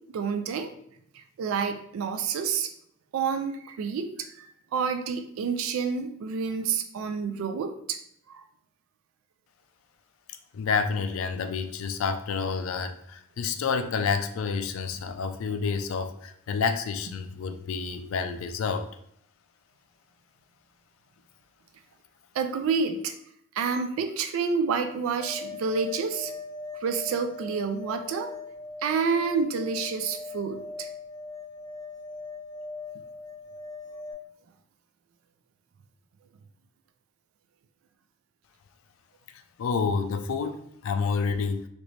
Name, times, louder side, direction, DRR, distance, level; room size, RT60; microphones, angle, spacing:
voice 1, 0.1-0.7 1.1-2.7 3.1-8.0 8.3-8.4 22.3-23.1 23.5-26.3 26.8-28.3 28.8-30.9, right 5 dB, 75° right, 8 dB, 0.3 m, -29 dB
voice 2, 10.5-18.9 39.6-41.7, left 5 dB, 70° left, 9 dB, 0.3 m, -29 dB
sound 1, 25.2-34.1, left 3 dB, 60° right, 1.3 m, -40 dB
2.9 x 2.6 x 3.1 m, 0.70 s
head